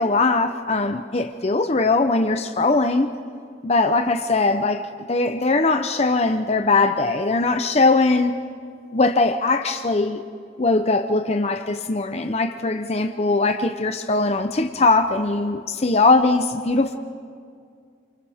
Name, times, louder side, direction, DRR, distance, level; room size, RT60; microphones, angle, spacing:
voice 1, 0.0-3.1 3.6-8.4 8.9-10.2 10.6-17.0, left 3 dB, 35° left, 7 dB, 0.7 m, -20 dB
29.5 x 28.5 x 3.6 m, 2.2 s
head